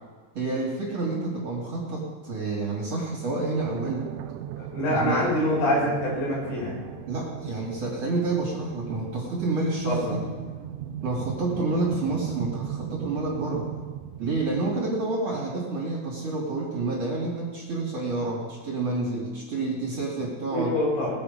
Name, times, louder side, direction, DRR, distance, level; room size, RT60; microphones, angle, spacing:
voice 1, 0.3-4.1 4.9-5.3 7.1-10.2 11.0-13.7 14.2-20.7, right 3 dB, 35° right, -4 dB, 3.1 m, -29 dB
sound 1, 3.6-14.7, right 10 dB, 80° right, 2.9 m, -37 dB
voice 2, 4.6-6.8 9.9-10.1 20.5-21.1, left 1 dB, 90° left, -3 dB, 7.5 m, -25 dB
22.0 x 8.0 x 5.4 m, 1.5 s
omnidirectional pair, 5.8 m